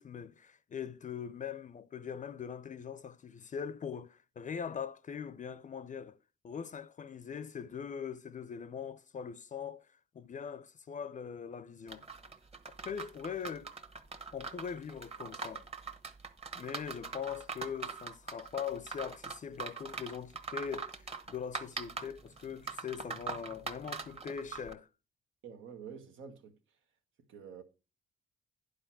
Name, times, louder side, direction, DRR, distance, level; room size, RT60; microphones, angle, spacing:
voice 1, 0.0-6.2 6.4-9.9 10.1-12.1 12.8-13.7 14.3-15.7 16.5-24.9, left 7 dB, 40° left, 0.5 m, -41 dB
sound 1, 11.9-24.7, right 4 dB, 30° right, 1.4 m, -42 dB
voice 2, 25.4-26.6 27.3-27.6, right 7 dB, 80° right, 1.4 m, -48 dB
10.5 x 4.8 x 5.9 m
cardioid pair, 90°, 20 cm